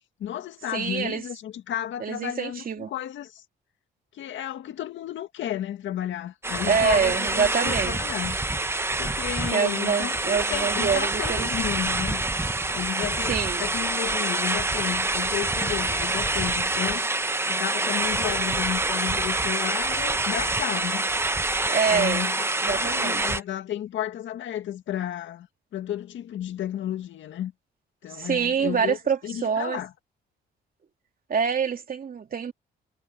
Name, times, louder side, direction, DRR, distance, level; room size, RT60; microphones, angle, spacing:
voice 1, 0.2-3.4 4.1-8.4 9.0-12.2 12.7-13.3 13.6-17.1 17.5-21.1 21.9-25.5 25.7-27.5 28.0-29.0 29.2-29.9, left 11 dB, 75° left, 1.8 m, -33 dB
voice 2, 0.7-1.2 2.0-2.9 6.7-8.0 9.5-11.5 13.3-13.7 21.7-22.3 22.6-23.2 28.2-29.8 31.3-32.5, right 6 dB, 45° right, 2.9 m, -26 dB
sound 1, 6.4-23.4, right 2 dB, 10° right, 0.9 m, -26 dB
cardioid pair, 90°, 20 cm